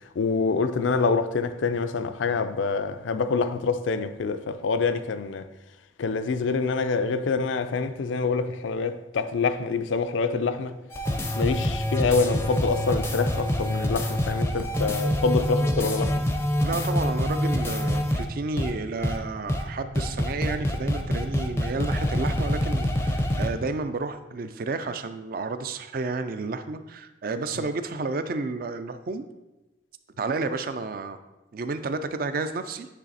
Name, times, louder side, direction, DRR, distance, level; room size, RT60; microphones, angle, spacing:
voice 1, 0.2-5.5 6.0-10.8 11.4-16.2, left 4 dB, 75° left, 0.4 m, -26 dB
sound 1, 10.9-18.2 18.6-18.7 19.0-19.2 19.5-19.6 19.9-23.5, left 1 dB, 15° left, 0.5 m, -26 dB
voice 2, 16.6-29.2 30.2-31.2 31.5-32.9, right 3 dB, 50° right, 0.4 m, -31 dB
9.7 x 3.2 x 4.1 m
head